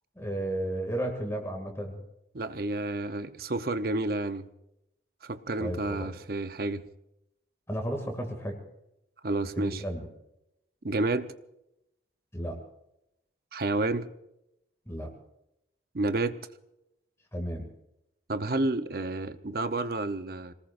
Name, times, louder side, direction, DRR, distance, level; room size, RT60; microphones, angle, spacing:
voice 1, 0.2-2.0 5.6-6.1 7.7-8.6 9.6-10.1 12.3-12.6 14.9-15.1 17.3-17.7, right 1 dB, 15° left, 2 dB, 2.4 m, -33 dB
voice 2, 2.3-4.5 5.2-6.8 9.2-9.8 10.8-11.3 13.5-14.1 15.9-16.4 18.3-20.5, right 2 dB, 55° right, 10 dB, 0.8 m, -30 dB
26.0 x 19.0 x 2.6 m, 0.84 s
head